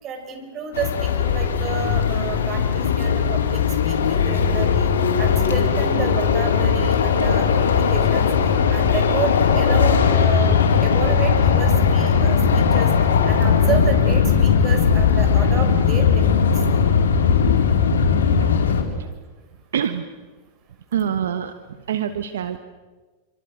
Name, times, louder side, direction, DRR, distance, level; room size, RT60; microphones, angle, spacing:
voice 1, 0.0-4.9 5.2-8.3 8.7-12.9 13.3-16.4, right 5 dB, 35° right, 4 dB, 7.3 m, -30 dB
sound 1, 0.7-18.8, left 6 dB, 85° left, 4.4 m, -18 dB
voice 2, 18.3-18.7 19.7-20.0 20.9-21.5 21.9-22.6, right 9 dB, 80° right, 10 dB, 1.3 m, -25 dB
29.0 x 26.0 x 6.6 m, 1.3 s
hypercardioid pair, 105°, 0 cm